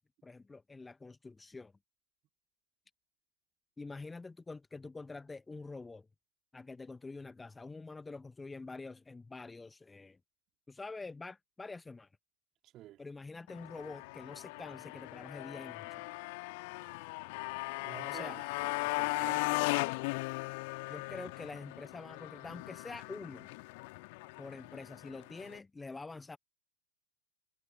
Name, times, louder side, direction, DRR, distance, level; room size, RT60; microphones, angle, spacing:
voice 1, 0.2-1.7 3.8-6.1 6.5-10.2 10.7-12.1 13.0-16.0 18.0-18.4 20.9-23.5 24.4-26.4, left 3 dB, 10° left, 1.2 m, -46 dB
Motorcycle, 13.5-25.6, left 27 dB, 50° left, 2.0 m, -38 dB
voice 2, 17.8-19.7, right 14 dB, 35° right, 2.5 m, -50 dB
figure-of-eight pair, 90°, 0 cm